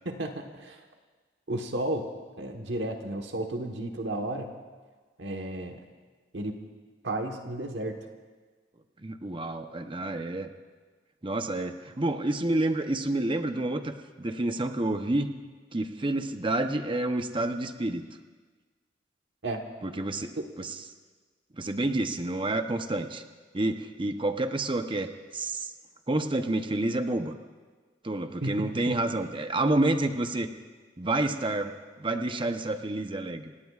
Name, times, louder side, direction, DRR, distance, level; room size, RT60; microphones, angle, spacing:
voice 1, 0.0-0.8 1.5-2.1 2.4-4.5 5.2-5.8 6.3-6.6 7.0-8.0 19.4-19.6 28.4-29.0, right 1 dB, 70° right, 3 dB, 1.3 m, -33 dB
voice 2, 9.0-10.5 11.2-15.3 15.7-18.0 19.8-20.3 20.6-20.8 21.5-23.2 23.5-25.7 26.1-27.3 28.0-30.5 31.0-33.5, right 2 dB, 30° right, 7 dB, 0.8 m, -29 dB
27.5 x 17.5 x 2.4 m, 1.4 s
head